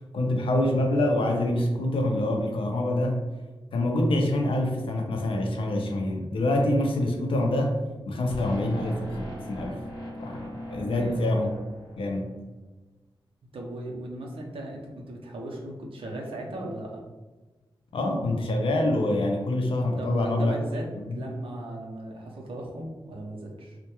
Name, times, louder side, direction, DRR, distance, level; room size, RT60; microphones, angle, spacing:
voice 1, 0.1-3.2 3.7-7.8 8.1-9.8 10.2-11.5 12.0-12.3 17.9-20.6 21.1-21.2, left 1 dB, 75° left, 2 dB, 0.4 m, -26 dB
sound 1, 8.2-12.3, equal, 45° left, 0.8 m, -40 dB
voice 2, 10.8-11.2 13.5-17.0 20.0-23.8, right 1 dB, 85° right, -1 dB, 0.5 m, -37 dB
2.2 x 2.1 x 2.9 m, 1.2 s
wide cardioid pair, 140°, 9 cm